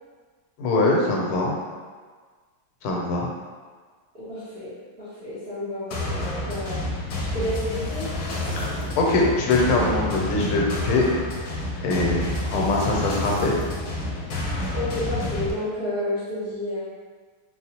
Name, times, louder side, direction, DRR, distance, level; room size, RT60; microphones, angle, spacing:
voice 1, 0.6-1.5 2.8-3.3 8.5-8.7 9.0-11.0 11.8-13.5, left 2 dB, 85° left, -2 dB, 1.5 m, -22 dB
voice 2, 4.1-6.8 7.2-8.1 12.6-12.8 14.7-16.8, left 1 dB, 60° right, -13 dB, 0.6 m, -31 dB
sound 1, 5.9-15.5, left 1 dB, 70° left, 0.9 m, -29 dB
4.4 x 2.0 x 2.8 m, 1.5 s
omnidirectional pair, 2.3 m